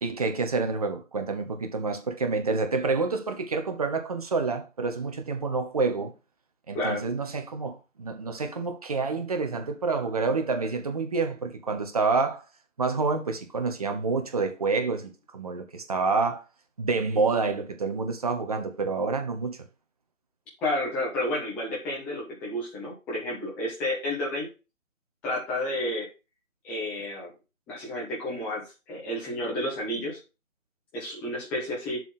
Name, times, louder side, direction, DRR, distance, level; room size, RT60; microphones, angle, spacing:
voice 1, 0.0-6.1 6.7-12.4 12.8-16.4 16.8-19.7, right 4 dB, 30° right, 1.1 m, -28 dB
voice 2, 20.6-24.5 25.2-26.1 26.6-27.3 27.7-30.2 30.9-32.0, left 1 dB, 5° left, 1.1 m, -31 dB
7.2 x 6.2 x 3.8 m
figure-of-eight pair, 160°, 40 cm